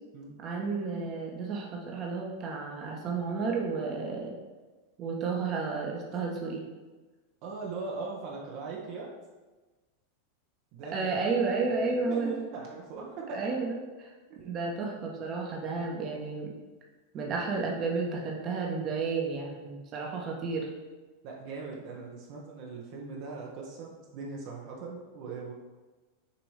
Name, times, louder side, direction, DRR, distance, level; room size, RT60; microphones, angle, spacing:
voice 1, 0.4-4.4 5.0-6.6 10.9-12.4 13.3-13.8 14.4-16.5 17.1-20.7, right 4 dB, 35° right, -1 dB, 1.3 m, -32 dB
voice 2, 7.4-9.1 10.7-11.3 12.0-13.5 14.3-14.4 15.7-15.8 21.2-25.5, right 4 dB, 55° right, -2 dB, 1.2 m, -40 dB
6.9 x 3.0 x 5.0 m, 1.3 s
hypercardioid pair, 120°, 0 cm